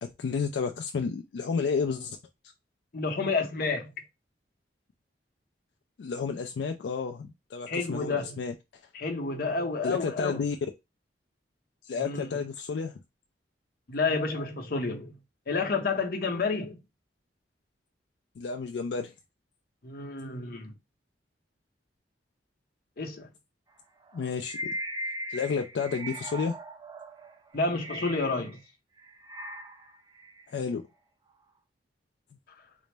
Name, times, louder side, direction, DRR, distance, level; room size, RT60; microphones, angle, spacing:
voice 1, 0.0-2.2 6.0-8.5 9.8-10.6 11.8-13.0 18.4-19.1 24.1-24.6 25.3-26.6 30.5-30.8, left 5 dB, 75° left, 0.3 m, -31 dB
voice 2, 2.9-3.9 7.7-8.4 8.9-10.4 12.0-12.4 13.9-15.2 15.5-16.8 19.8-20.7 23.0-23.3 27.5-28.6, left 3 dB, 55° left, 0.8 m, -30 dB
sound 1, 24.0-28.6 29.0-30.5, equal, 20° right, 0.5 m, -39 dB
3.9 x 2.1 x 3.3 m
head